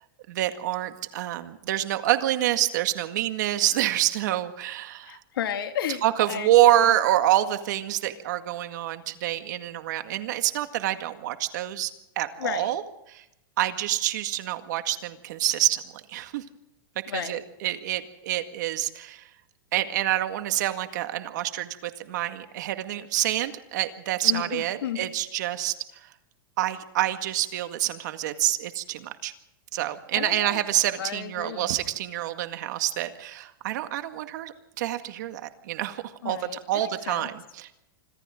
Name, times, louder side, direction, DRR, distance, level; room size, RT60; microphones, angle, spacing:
voice 1, 0.3-5.2 6.0-11.9 12.2-12.8 13.1-13.2 13.6-15.8 16.1-16.4 17.1-19.2 19.7-25.7 26.6-29.3 29.7-36.4 36.7-37.8, right 14 dB, 55° right, 8 dB, 2.0 m, -27 dB
voice 2, 5.0-7.0 12.4-12.7 17.1-17.4 24.2-25.1 30.1-30.6 31.0-31.7 36.2-37.3, left 10 dB, 80° left, 7 dB, 2.3 m, -33 dB
26.5 x 26.0 x 3.8 m, 0.86 s
supercardioid pair, 170°, 12 cm